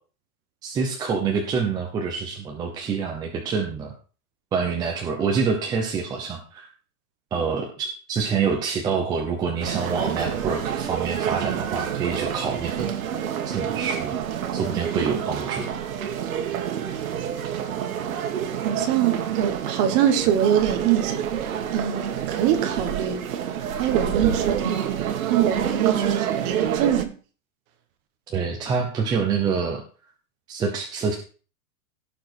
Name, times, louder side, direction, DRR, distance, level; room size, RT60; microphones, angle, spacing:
voice 1, 0.6-3.9 4.5-6.7 7.3-12.9 13.4-14.2 14.5-15.7 28.3-29.8 30.5-31.1, right 5 dB, 10° right, 0.8 m, -26 dB
sound 1, 9.6-27.0, right 9 dB, 60° right, 2.0 m, -28 dB
voice 2, 18.6-21.2 21.7-23.3 23.8-27.1, right 10 dB, 25° right, 1.4 m, -24 dB
17.0 x 6.7 x 4.6 m
supercardioid pair, 170°, 45 cm